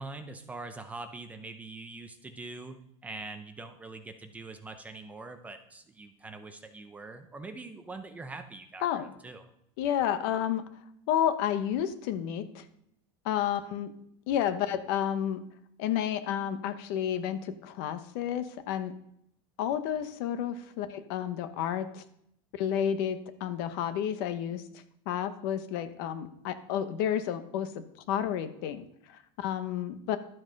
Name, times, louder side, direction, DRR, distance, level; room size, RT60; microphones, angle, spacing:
voice 1, 0.0-9.4, right 3 dB, 10° right, 7 dB, 0.6 m, -43 dB
voice 2, 9.8-10.6 11.1-12.6 13.2-13.9 14.3-15.4 15.8-18.9 19.6-22.0 22.5-27.7 28.1-30.2, left 10 dB, 55° left, 10 dB, 1.0 m, -31 dB
12.0 x 7.7 x 5.3 m, 0.73 s
supercardioid pair, 175°, 15 cm